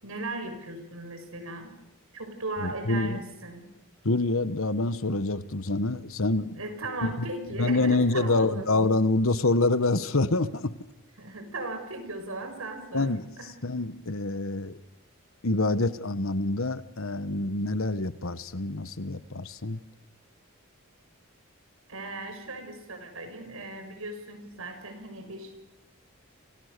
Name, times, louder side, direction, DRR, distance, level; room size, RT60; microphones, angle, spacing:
voice 1, 0.0-1.7 2.1-3.7 6.6-8.7 11.2-13.1 13.4-13.5 21.9-25.5, right 2 dB, 75° right, 7 dB, 6.3 m, -37 dB
voice 2, 2.6-3.2 4.0-6.6 7.2-7.3 7.6-10.7 12.9-13.3 13.6-14.8 15.4-19.8, left 2 dB, 70° left, 14 dB, 1.3 m, -26 dB
30.0 x 27.0 x 6.8 m, 0.84 s
head